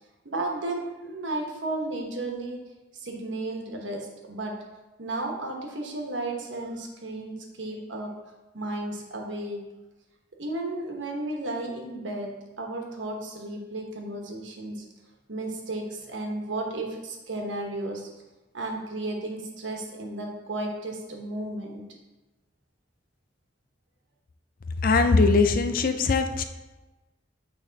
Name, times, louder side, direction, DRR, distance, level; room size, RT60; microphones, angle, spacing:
voice 1, 0.2-2.7 2.9-4.6 5.0-8.1 8.5-9.7 10.4-14.8 15.3-18.1 18.5-21.8, right 2 dB, 85° right, 1 dB, 1.2 m, -33 dB
voice 2, 24.8-26.4, left 3 dB, 50° left, 9 dB, 0.4 m, -21 dB
8.6 x 3.4 x 4.0 m, 1.1 s
head